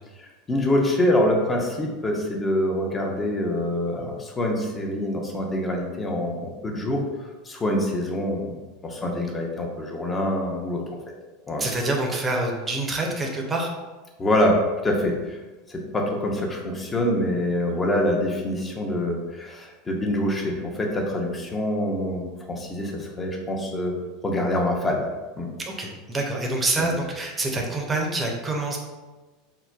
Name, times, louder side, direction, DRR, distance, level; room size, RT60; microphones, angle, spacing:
voice 1, 0.5-7.0 7.5-8.6 8.8-10.8 11.5-11.7 14.2-15.4 15.7-24.0 24.2-25.1 25.4-25.5 26.8-26.9, left 1 dB, 20° left, 0 dB, 0.7 m, -25 dB
voice 2, 11.6-13.7 25.6-28.8, right 2 dB, 20° right, 0 dB, 0.6 m, -26 dB
3.9 x 2.1 x 2.4 m, 1.2 s
hypercardioid pair, 90°, 0 cm